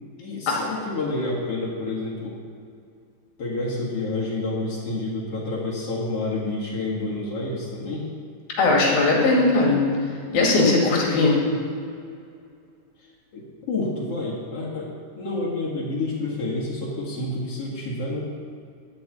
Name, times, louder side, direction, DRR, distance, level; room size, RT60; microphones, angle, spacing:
voice 1, 0.2-2.4 3.4-8.1 13.3-18.2, left 2 dB, 45° left, -6 dB, 2.4 m, -29 dB
voice 2, 8.6-9.8 10.3-11.4, left 3 dB, 70° left, -3 dB, 3.8 m, -19 dB
11.5 x 5.3 x 8.8 m, 2.4 s
omnidirectional pair, 4.5 m